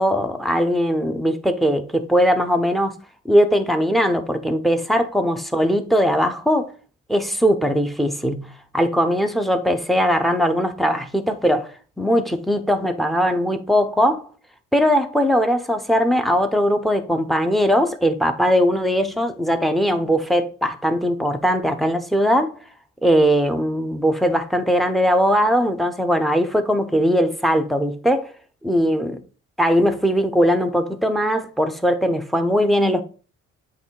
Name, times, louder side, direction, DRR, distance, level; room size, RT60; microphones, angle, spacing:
voice 1, 0.0-3.0 3.2-6.7 7.1-8.5 8.7-11.7 12.0-14.2 14.7-22.5 23.0-28.3 28.6-29.1 29.6-33.0, equal, ahead, 0.9 m, -20 dB
8.2 x 3.3 x 4.7 m
cardioid pair, 90°, 30 cm